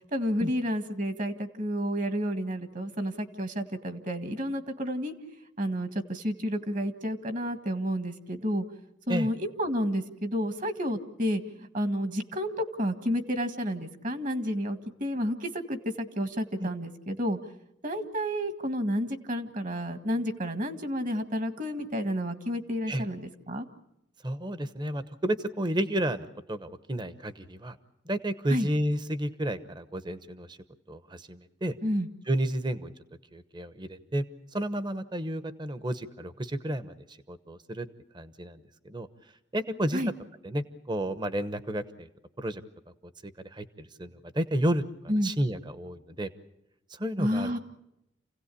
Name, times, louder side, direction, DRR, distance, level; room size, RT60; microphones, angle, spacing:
voice 1, 0.1-5.1 5.6-8.6 9.1-11.4 11.7-17.4 17.8-23.7 28.5-28.7 31.8-32.1 39.9-40.1 45.1-45.3 47.2-47.6, equal, 45° right, 9 dB, 1.7 m, -30 dB
voice 2, 24.2-27.8 28.0-30.6 30.9-31.7 32.3-32.9 33.3-34.3 34.5-37.9 38.1-38.6 38.9-39.1 39.5-40.0 40.4-42.1 42.4-42.6 43.2-44.8 45.2-46.3 46.9-47.5, right 1 dB, 25° right, 12 dB, 1.0 m, -31 dB
28.5 x 17.0 x 8.5 m, 0.87 s
head